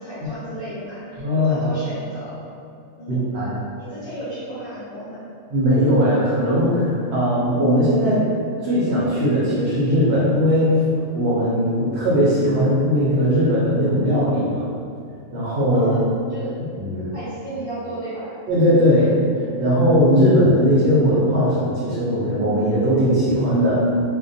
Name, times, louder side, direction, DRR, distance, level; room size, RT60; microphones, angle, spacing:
voice 1, 0.0-2.4 3.0-3.3 3.8-5.3 15.7-16.0 16.3-16.5 17.1-18.3, right 1 dB, 40° left, -14 dB, 0.5 m, -33 dB
voice 2, 1.2-1.6 3.1-3.5 5.5-8.3 8.6-10.8 11.1-14.7 15.3-15.9 16.8-17.1 18.5-23.8, equal, 65° right, -8 dB, 0.8 m, -19 dB
2.2 x 2.2 x 2.5 m, 2.4 s
omnidirectional pair, 1.4 m